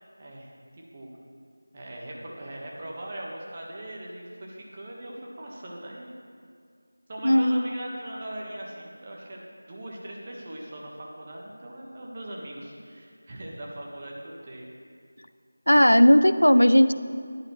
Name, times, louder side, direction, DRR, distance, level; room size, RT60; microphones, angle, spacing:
voice 1, 0.2-1.1 1.7-6.1 7.1-9.4 9.7-14.7, right 1 dB, 25° right, -2 dB, 1.4 m, -40 dB
voice 2, 7.2-7.6 15.7-16.9, equal, 85° left, 12 dB, 0.4 m, -17 dB
13.5 x 11.0 x 3.2 m, 2.2 s
figure-of-eight pair, 170°, 0 cm